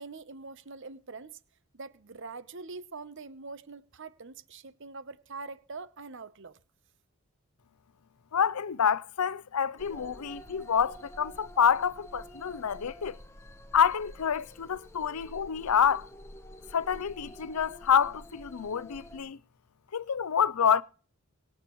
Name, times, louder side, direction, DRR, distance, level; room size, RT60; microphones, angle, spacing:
voice 1, 0.0-1.4 1.7-6.6, right 4 dB, 55° right, 0.9 m, -44 dB
voice 2, 8.3-13.2 13.7-16.1 16.7-19.4 19.9-20.8, left 7 dB, 85° left, 0.6 m, -27 dB
sound 1, 9.8-19.2, equal, 10° left, 1.1 m, -48 dB
24.0 x 8.4 x 3.1 m
head